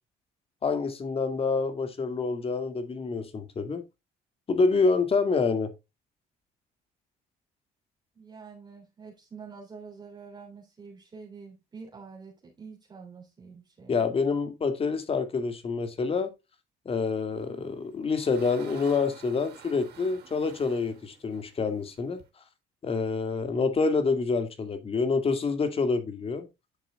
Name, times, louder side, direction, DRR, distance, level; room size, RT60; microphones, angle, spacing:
voice 1, 0.6-3.8 4.5-5.7 13.9-16.3 16.9-22.2 22.8-26.5, left 4 dB, 35° left, 2.1 m, -27 dB
voice 2, 8.1-14.3, right 5 dB, 25° right, 3.3 m, -47 dB
sound 1, 17.6-22.3, right 8 dB, 70° right, 3.0 m, -51 dB
10.0 x 6.9 x 2.2 m
cardioid pair, 110°, 17 cm